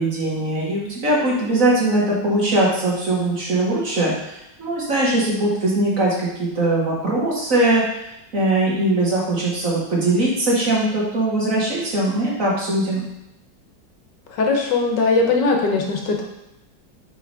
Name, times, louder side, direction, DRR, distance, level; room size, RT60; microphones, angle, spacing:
voice 1, 0.0-8.0 8.3-13.0, right 2 dB, 50° right, -5 dB, 1.9 m, -21 dB
voice 2, 14.3-16.2, left 3 dB, 70° left, 1 dB, 1.6 m, -19 dB
5.9 x 4.2 x 4.7 m, 0.87 s
omnidirectional pair, 2.0 m